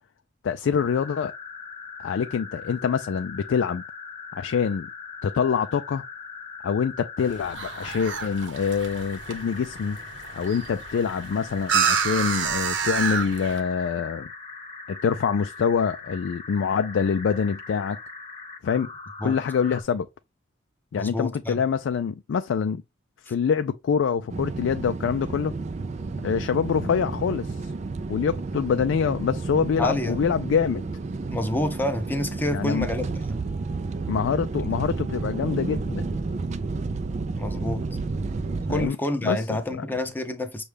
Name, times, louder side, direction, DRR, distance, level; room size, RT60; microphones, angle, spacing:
voice 1, 0.4-1.3 2.0-3.8 4.3-4.9 5.2-6.0 6.6-10.0 10.3-14.3 14.9-18.0 18.6-18.9 19.2-20.1 20.9-22.8 23.3-25.5 26.2-27.7 28.1-30.8 32.5-32.9 34.1-36.1 38.7-39.0 39.2-39.6, left 6 dB, 85° left, 0.3 m, -25 dB
sound 1, 0.8-19.8, left 4 dB, 30° left, 1.0 m, -41 dB
sound 2, 7.2-13.6, right 6 dB, 75° right, 0.8 m, -29 dB
voice 2, 20.9-21.6 23.3-23.4 29.8-30.2 31.3-33.4 34.6-34.7 37.4-37.8 38.7-40.6, left 1 dB, 10° left, 0.6 m, -28 dB
sound 3, 24.3-38.9, right 3 dB, 35° right, 0.3 m, -31 dB
6.5 x 2.3 x 3.3 m
head